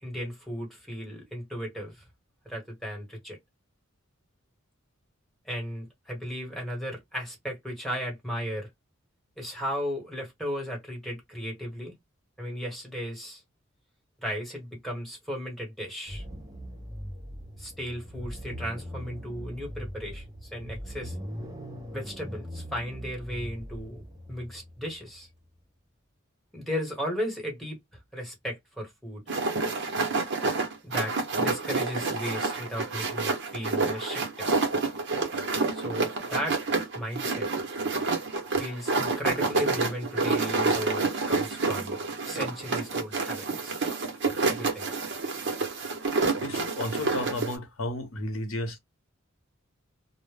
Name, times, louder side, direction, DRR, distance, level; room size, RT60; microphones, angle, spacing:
voice 1, 0.0-2.0 2.4-3.4 5.4-8.7 9.4-11.9 12.4-13.4 14.2-16.2 17.6-21.2 21.9-25.3 26.5-27.8 28.1-29.2 30.8-34.5 35.7-36.6 36.9-37.5 38.5-42.0 42.2-43.8 44.5-44.8, equal, ahead, 1.1 m, -35 dB
sound 1, 16.1-25.5, equal, 20° right, 0.6 m, -41 dB
sound 2, 29.3-47.6, right 3 dB, 60° right, 0.7 m, -28 dB
voice 2, 46.4-48.8, left 1 dB, 85° left, 0.8 m, -33 dB
2.1 x 2.0 x 3.2 m
head